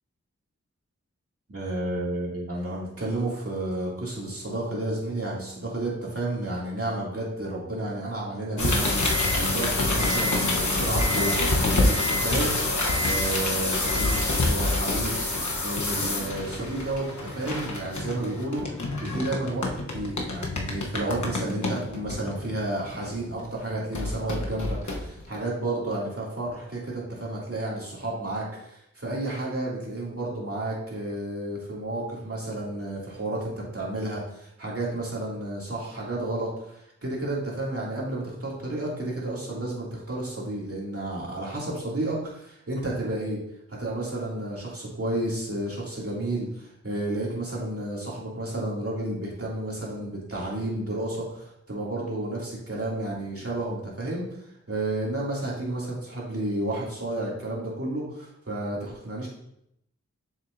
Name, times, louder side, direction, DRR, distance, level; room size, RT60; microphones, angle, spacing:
voice 1, 1.5-12.7 13.0-15.2 15.6-18.6 19.0-43.4 43.7-59.3, right 1 dB, 55° right, -5 dB, 2.6 m, -31 dB
sound 1, 8.6-23.4 23.9-25.4, left 2 dB, 80° left, 1.1 m, -27 dB
7.2 x 6.6 x 2.7 m, 0.77 s
wide cardioid pair, 45°, 29 cm